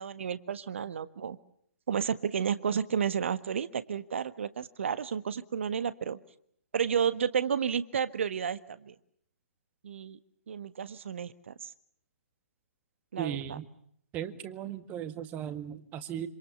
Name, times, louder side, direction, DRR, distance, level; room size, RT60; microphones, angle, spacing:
voice 1, 0.0-1.4 1.9-6.2 6.7-8.9 9.8-10.2 10.5-11.7 13.1-13.6, right 7 dB, 55° right, 14 dB, 1.5 m, -31 dB
voice 2, 13.2-13.7 14.1-16.3, right 10 dB, 20° right, 11 dB, 1.7 m, -37 dB
27.0 x 26.5 x 7.1 m, 0.69 s
figure-of-eight pair, 130°, 8 cm